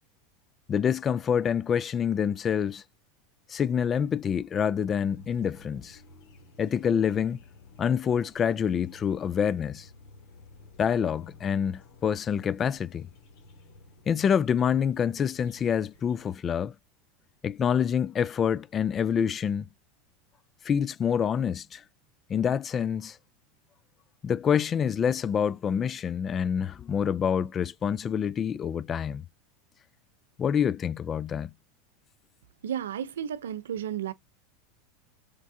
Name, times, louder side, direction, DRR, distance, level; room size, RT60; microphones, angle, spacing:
voice 1, 0.7-2.8 3.5-6.0 6.6-7.4 7.8-9.9 10.8-13.1 14.1-16.7 17.4-19.7 20.6-21.8 22.3-23.2 24.2-29.3 30.4-31.5, left 8 dB, 30° left, 0.3 m, -27 dB
sound 1, 5.0-16.4, left 2 dB, 65° left, 2.6 m, -53 dB
voice 2, 32.6-34.1, right 9 dB, 85° right, 0.6 m, -32 dB
5.1 x 3.5 x 2.7 m
hypercardioid pair, 105°, 0 cm